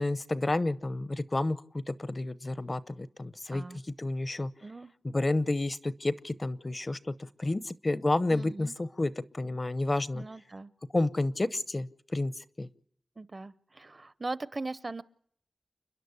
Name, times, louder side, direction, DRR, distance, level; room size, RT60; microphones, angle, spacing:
voice 1, 0.0-3.6 4.0-4.5 5.0-10.2 10.9-12.7, left 2 dB, 35° left, 15 dB, 0.8 m, -30 dB
voice 2, 3.5-3.8 4.6-4.9 8.3-8.7 10.1-10.7 13.2-15.0, right 3 dB, 40° right, 16 dB, 0.7 m, -39 dB
29.5 x 11.0 x 8.2 m, 0.68 s
wide cardioid pair, 75°, 0 cm